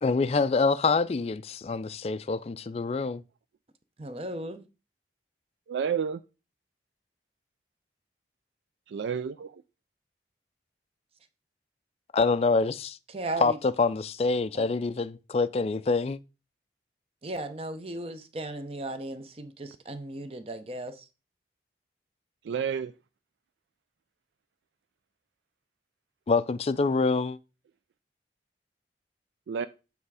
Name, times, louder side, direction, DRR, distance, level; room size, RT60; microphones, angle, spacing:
voice 1, 0.0-3.2 12.1-13.0 13.4-13.5 13.8-16.2 26.3-27.4, left 4 dB, 35° left, 0.3 m, -26 dB
voice 2, 4.0-4.6 13.1-13.6 14.5-14.6 17.2-21.1, right 1 dB, 35° right, 0.7 m, -36 dB
voice 3, 5.7-6.2 8.9-9.6 22.4-22.9 29.5-29.7, right 7 dB, 85° right, 0.3 m, -30 dB
8.2 x 3.5 x 4.7 m
head